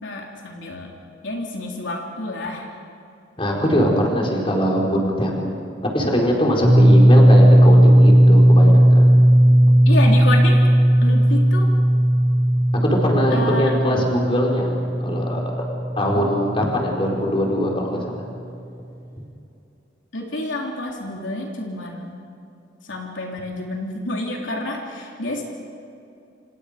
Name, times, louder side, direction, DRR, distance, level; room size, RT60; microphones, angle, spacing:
voice 1, 0.0-0.9 1.2-2.7 9.9-10.7 11.0-11.7 13.3-13.7 16.0-16.7 20.1-22.2 22.9-25.4, left 1 dB, 80° left, -1 dB, 3.5 m, -29 dB
voice 2, 3.4-5.5 5.9-9.1 13.0-14.7 15.0-15.6 16.0-18.0, equal, 30° left, -1 dB, 4.6 m, -21 dB
sound 1, 6.6-17.2, equal, 15° right, 3.2 m, -15 dB
29.0 x 27.0 x 5.2 m, 2.6 s
head